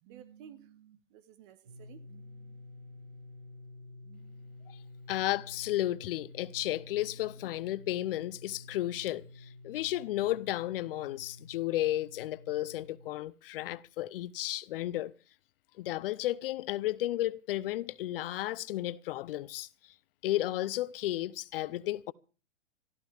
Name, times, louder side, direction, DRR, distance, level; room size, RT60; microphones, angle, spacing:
voice 1, 0.0-2.7 4.0-4.7, right 9 dB, 45° right, 1.5 m, -55 dB
sound 1, 1.6-13.1, left 2 dB, 80° right, 6.5 m, -51 dB
voice 2, 5.1-15.1 15.8-19.7 20.2-22.1, left 15 dB, 50° left, 0.6 m, -33 dB
23.0 x 14.0 x 3.4 m
hypercardioid pair, 120°, 37 cm